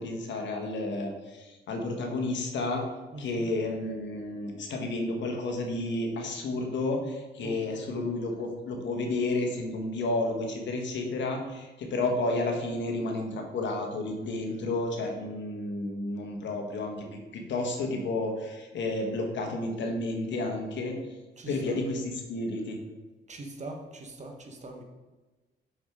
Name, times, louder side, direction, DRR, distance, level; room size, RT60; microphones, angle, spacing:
voice 1, 0.0-2.8 3.2-17.0 17.3-21.0 21.5-22.8, left 2 dB, 65° left, 2 dB, 1.3 m, -31 dB
voice 2, 3.1-3.5 7.4-8.1 21.4-21.8 23.3-24.8, right 2 dB, 35° right, 3 dB, 1.2 m, -42 dB
6.3 x 5.9 x 3.6 m, 1.2 s
cardioid pair, 90°, 20 cm